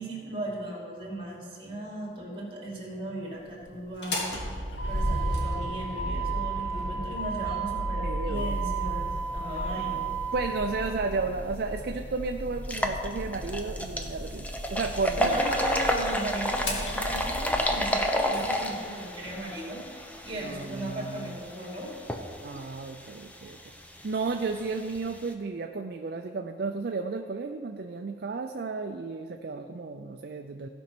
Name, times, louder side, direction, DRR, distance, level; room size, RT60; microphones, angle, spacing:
voice 1, 0.0-4.4 4.9-10.1 15.1-21.9, right 1 dB, 30° right, -2 dB, 2.6 m, -37 dB
Motor vehicle (road), 3.9-18.5, right 2 dB, 80° left, 1.9 m, -33 dB
voice 2, 8.0-8.6 10.3-15.4 20.4-21.3 22.4-23.6 24.0-30.7, right 4 dB, 60° right, 5 dB, 0.4 m, -33 dB
sound 1, 11.3-11.4 11.8-11.9 12.6-25.3, equal, 10° left, 0.7 m, -31 dB
15.5 x 5.3 x 6.0 m, 2.1 s
head